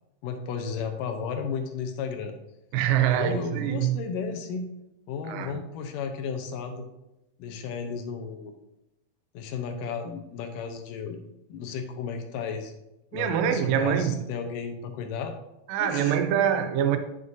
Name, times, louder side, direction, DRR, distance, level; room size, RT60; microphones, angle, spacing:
voice 1, 0.2-2.3 3.1-4.7 5.1-6.9 7.4-8.5 9.3-11.2 11.5-12.7 13.1-15.4 15.8-16.2, left 6 dB, 80° left, 2.3 m, -34 dB
voice 2, 2.7-4.0 5.3-5.6 13.1-14.2 15.7-17.0, right 9 dB, 90° right, 2.4 m, -24 dB
9.5 x 6.3 x 2.7 m
omnidirectional pair, 3.8 m